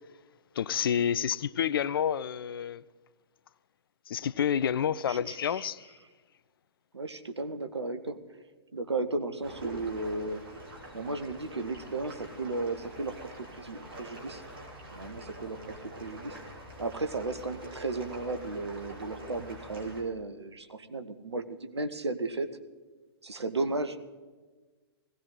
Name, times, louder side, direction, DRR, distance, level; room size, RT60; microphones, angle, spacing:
voice 1, 0.6-2.8 4.1-5.9, left 8 dB, 55° left, 0.5 m, -29 dB
voice 2, 5.1-5.7 6.9-8.4 8.7-10.4 10.9-14.4 14.9-16.4 16.8-22.5 23.2-24.0, right 3 dB, 80° right, 1.1 m, -35 dB
sound 1, 9.4-20.0, right 1 dB, 55° right, 3.6 m, -45 dB
18.5 x 16.5 x 4.0 m
figure-of-eight pair, 115°, 14 cm